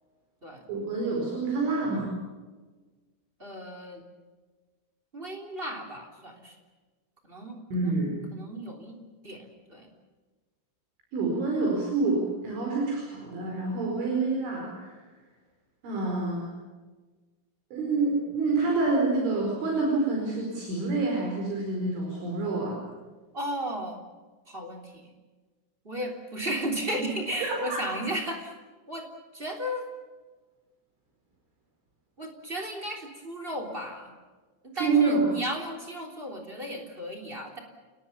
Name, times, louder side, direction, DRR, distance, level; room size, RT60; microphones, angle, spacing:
voice 1, 0.7-2.1 7.7-8.3 11.1-15.0 15.8-16.5 17.7-22.8 27.4-27.8 34.8-35.3, right 3 dB, 70° right, -1 dB, 7.0 m, -27 dB
voice 2, 3.4-4.0 5.1-6.5 7.3-8.0 8.3-9.0 9.2-9.9 23.3-24.0 24.5-25.1 25.8-28.5 28.9-29.1 29.3-29.9 32.2-34.1 34.6-37.6, equal, 15° right, 4 dB, 2.6 m, -35 dB
29.5 x 19.0 x 7.1 m, 1.3 s
omnidirectional pair, 5.7 m